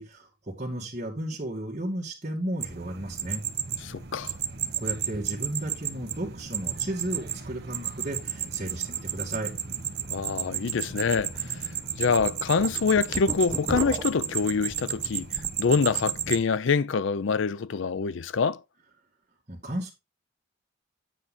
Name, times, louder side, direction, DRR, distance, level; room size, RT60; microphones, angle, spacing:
voice 1, 0.0-3.4 4.8-9.5 19.5-19.9, right 1 dB, 35° right, 2.5 m, -34 dB
sound 1, 2.6-16.4, right 9 dB, 50° right, 0.9 m, -33 dB
voice 2, 3.8-4.4 10.1-15.3 15.6-18.6, left 5 dB, 65° left, 0.5 m, -26 dB
sound 2, 10.0-10.1 10.5-10.6 11.2-11.4 11.8-15.6 16.0-16.4, right 1 dB, 20° right, 0.6 m, -37 dB
9.4 x 5.6 x 4.1 m
head